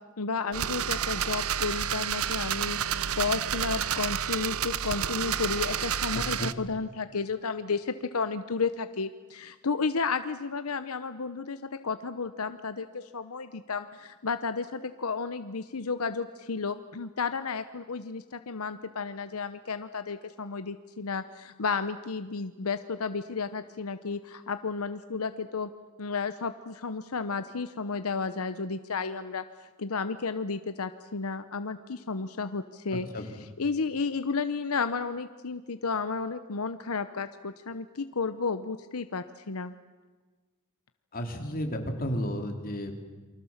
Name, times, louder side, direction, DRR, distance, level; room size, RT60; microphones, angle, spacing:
voice 1, 0.2-25.7 26.0-33.1 33.6-39.7, left 4 dB, 85° left, 10 dB, 0.9 m, -32 dB
sound 1, 0.5-6.5, right 9 dB, 80° right, 0.8 m, -30 dB
voice 2, 6.1-6.5 32.9-33.4 41.1-42.9, equal, 40° left, 3 dB, 3.3 m, -33 dB
28.5 x 24.5 x 7.3 m, 1.3 s
head